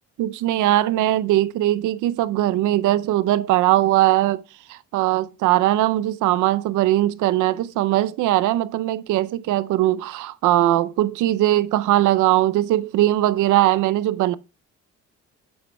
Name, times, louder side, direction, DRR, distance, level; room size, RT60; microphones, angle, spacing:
voice 1, 0.2-4.4 4.7-14.3, right 14 dB, 85° right, 0.5 m, -20 dB
8.2 x 7.2 x 2.2 m
cardioid pair, 90°, 30 cm